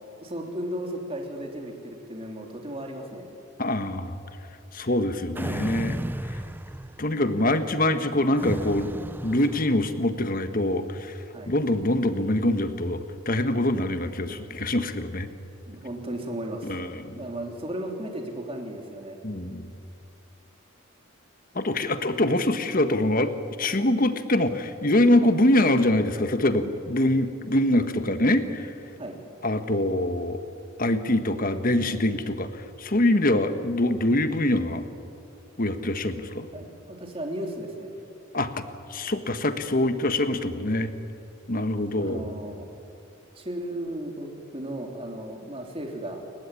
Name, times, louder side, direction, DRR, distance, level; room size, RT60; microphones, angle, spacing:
voice 1, 0.0-3.3 11.3-11.5 15.7-16.8 17.2-19.2 25.2-25.3 29.0-29.2 36.5-37.9 41.9-42.7 43.3-46.2, right 1 dB, 30° right, 2 dB, 3.2 m, -35 dB
voice 2, 3.6-4.2 4.7-6.0 6.3-6.4 7.0-8.9 9.2-11.2 11.5-15.3 16.6-17.2 19.2-19.7 21.5-23.3 23.6-28.7 29.4-30.4 30.8-34.9 35.6-36.5 38.3-38.6 38.9-40.9 41.5-42.2, left 1 dB, 45° left, 9 dB, 1.4 m, -24 dB
sound 1, 5.3-7.2 8.4-10.2, right 1 dB, 10° right, 0.5 m, -34 dB
29.5 x 15.5 x 9.9 m, 2.6 s
head